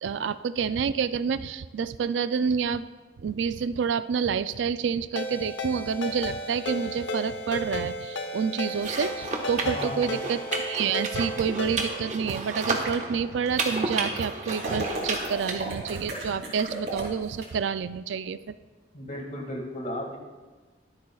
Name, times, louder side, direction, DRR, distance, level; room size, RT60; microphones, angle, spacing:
voice 1, 0.0-2.9 3.2-18.5, right 6 dB, 80° right, 14 dB, 0.4 m, -28 dB
Ringtone, 5.2-12.0, left 1 dB, 85° left, 0.9 m, -34 dB
sound 1, 8.7-15.6, right 3 dB, 40° right, 1.2 m, -32 dB
voice 2, 9.6-10.2 18.9-20.2, left 1 dB, 40° left, 0 dB, 2.1 m, -35 dB
sound 2, 14.4-17.5, right 1 dB, 65° right, 3.1 m, -34 dB
23.0 x 8.4 x 2.4 m, 1.3 s
head